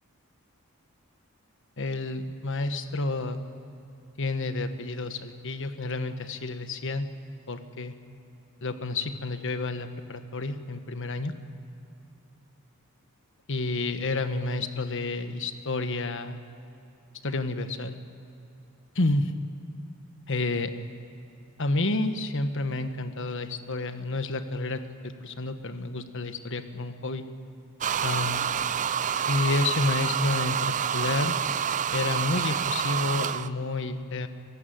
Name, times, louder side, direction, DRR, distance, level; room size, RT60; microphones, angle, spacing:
voice 1, 1.8-3.4 4.2-7.1 7.5-7.9 8.6-11.3 13.5-16.4 17.2-17.9 18.9-19.3 20.3-20.7 21.6-27.3 28.0-28.4 29.3-31.4 31.9-34.3, left 2 dB, 60° left, 9 dB, 1.3 m, -30 dB
sound 1, 27.8-33.5, right 8 dB, 35° right, 0.5 m, -28 dB
23.0 x 15.5 x 9.4 m, 2.7 s
head